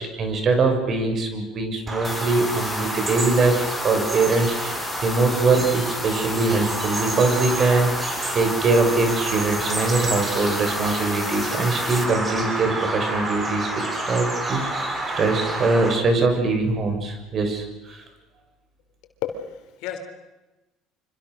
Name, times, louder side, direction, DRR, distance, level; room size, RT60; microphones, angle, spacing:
voice 1, 0.0-7.9 8.3-13.7 14.1-14.9 15.1-18.0, right 3 dB, 45° right, 5 dB, 6.8 m, -22 dB
Bird vocalization bird call bird song, 1.9-15.9, right 2 dB, 30° right, 7.1 m, -29 dB
sound 1, 2.0-12.0, left 4 dB, 20° left, 4.8 m, -34 dB
voice 2, 19.2-20.0, left 9 dB, 75° left, 6 dB, 3.6 m, -31 dB
26.5 x 25.5 x 6.5 m, 1.1 s
supercardioid pair, 90°, 0 cm